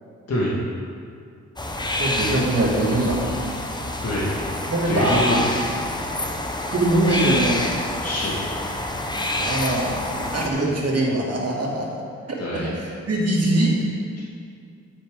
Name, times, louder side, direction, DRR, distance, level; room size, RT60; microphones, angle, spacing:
sound 1, 1.6-10.5, left 1 dB, 15° left, 1.0 m, -27 dB
voice 1, 2.0-3.2 4.7-5.4 6.7-7.6 9.3-11.9 12.5-13.8, right 1 dB, 50° right, -3 dB, 2.5 m, -22 dB
voice 2, 4.0-4.4 4.8-5.4 8.0-8.4 10.4-10.7 12.4-12.7, left 1 dB, 50° left, -7 dB, 2.3 m, -26 dB
9.8 x 8.5 x 4.0 m, 2.4 s
cardioid pair, 60°, 31 cm